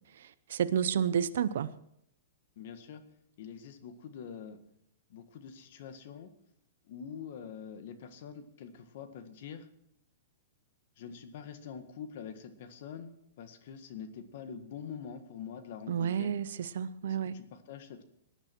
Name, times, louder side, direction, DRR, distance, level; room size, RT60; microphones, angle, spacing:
voice 1, 0.2-1.7 15.9-17.3, right 8 dB, 70° right, 0.7 m, -31 dB
voice 2, 2.6-3.0 3.4-4.6 5.1-6.3 6.9-9.7 11.0-16.3 17.0-18.0, left 7 dB, 55° left, 1.7 m, -45 dB
18.5 x 10.0 x 4.5 m
hypercardioid pair, 155°, 0 cm